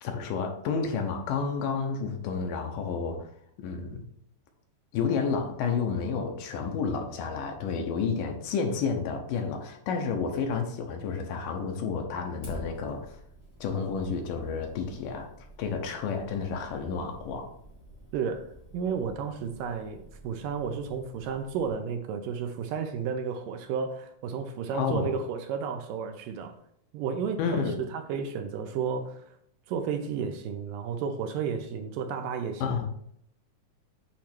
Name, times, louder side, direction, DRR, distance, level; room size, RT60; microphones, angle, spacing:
voice 1, 0.0-3.3 3.6-4.0 4.9-13.2 13.6-15.3 15.6-17.5 24.7-25.1 27.4-27.8 32.6-32.9, left 5 dB, 75° left, 4 dB, 2.3 m, -30 dB
Fire, 12.4-21.7, equal, 50° left, 0.4 m, -50 dB
voice 2, 18.1-18.5 18.7-20.0 20.2-26.6 26.9-27.6 27.9-29.2 29.7-32.8, right 6 dB, 75° right, 6 dB, 2.2 m, -32 dB
8.7 x 3.2 x 5.8 m, 0.71 s
omnidirectional pair, 4.2 m